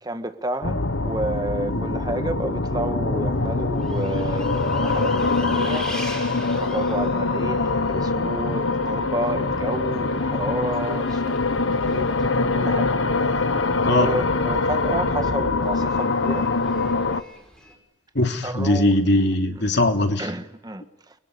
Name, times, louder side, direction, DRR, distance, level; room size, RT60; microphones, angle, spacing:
voice 1, 0.0-11.4 11.6-12.1 12.5-12.9 13.8-16.5 18.4-18.9 20.2-21.1, right 1 dB, 20° right, 1.6 m, -30 dB
sound 1, 0.6-17.2, left 3 dB, 90° left, 1.4 m, -24 dB
Bus, 3.3-17.7, equal, 5° left, 6.5 m, -43 dB
voice 2, 18.1-20.3, left 1 dB, 65° left, 2.9 m, -20 dB
29.5 x 23.0 x 8.5 m
head